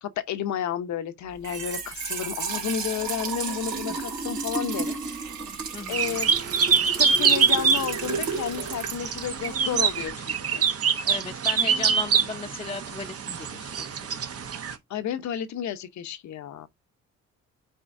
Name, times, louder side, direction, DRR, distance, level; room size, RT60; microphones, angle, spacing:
voice 1, 0.0-5.0 5.9-6.3 7.0-10.6 14.9-16.7, left 9 dB, 70° left, 0.9 m, -31 dB
Trickle dribble / Fill (with liquid), 1.3-10.1, right 4 dB, 75° right, 2.6 m, -33 dB
voice 2, 5.7-6.0 11.0-14.1, left 4 dB, 20° left, 0.8 m, -36 dB
sound 1, 5.9-14.8, right 6 dB, 50° right, 1.0 m, -25 dB
9.1 x 4.4 x 2.6 m
cardioid pair, 90°, 30 cm